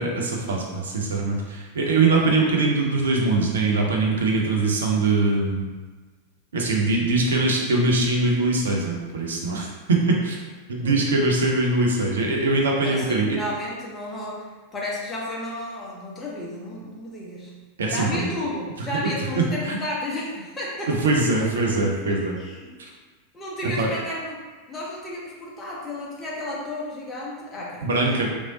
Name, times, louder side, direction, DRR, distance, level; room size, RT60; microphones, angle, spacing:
voice 1, 0.0-5.7 6.5-10.4 10.7-13.4 17.8-18.3 19.0-19.1 19.4-19.8 20.9-22.3 22.8-22.9 23.8-23.9 27.8-28.3, right 3 dB, 65° right, -1 dB, 0.5 m, -22 dB
voice 2, 12.8-14.5 14.7-17.5 17.9-20.9 21.3-21.5 21.9-22.7 23.3-24.4 24.7-28.3, left 1 dB, 20° left, -4 dB, 0.8 m, -33 dB
3.0 x 2.7 x 2.7 m, 1.3 s
figure-of-eight pair, 90°, 0 cm